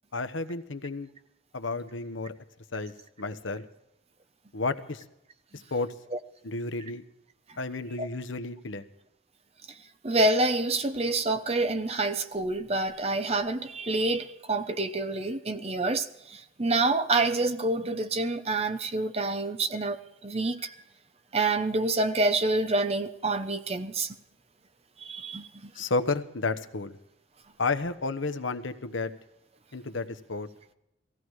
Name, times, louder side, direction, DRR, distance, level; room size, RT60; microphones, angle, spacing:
voice 1, 0.1-1.1 1.5-2.3 2.7-3.6 4.5-5.0 5.7-5.9 6.4-7.0 7.6-8.8 25.7-27.0 27.6-29.1 29.7-30.5, left 3 dB, 80° left, 1.1 m, -31 dB
voice 2, 10.0-20.0 20.2-20.7 21.3-24.2 25.0-25.7, right 2 dB, 30° right, 0.9 m, -27 dB
17.5 x 15.5 x 4.8 m
head